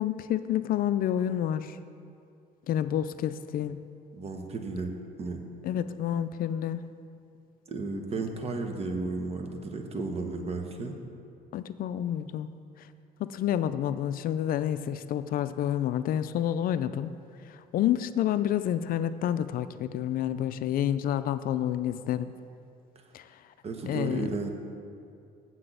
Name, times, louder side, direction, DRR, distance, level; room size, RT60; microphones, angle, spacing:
voice 1, 0.0-1.8 2.7-3.8 5.6-6.9 11.5-12.5 13.2-17.1 17.5-22.3 23.1-23.4 23.9-24.3, left 10 dB, 60° left, 12 dB, 0.4 m, -29 dB
voice 2, 4.1-4.9 5.2-5.4 7.7-10.9 23.6-24.5, right 3 dB, 35° right, 4 dB, 1.2 m, -33 dB
7.6 x 6.1 x 7.8 m, 2.5 s
cardioid pair, 110°, 17 cm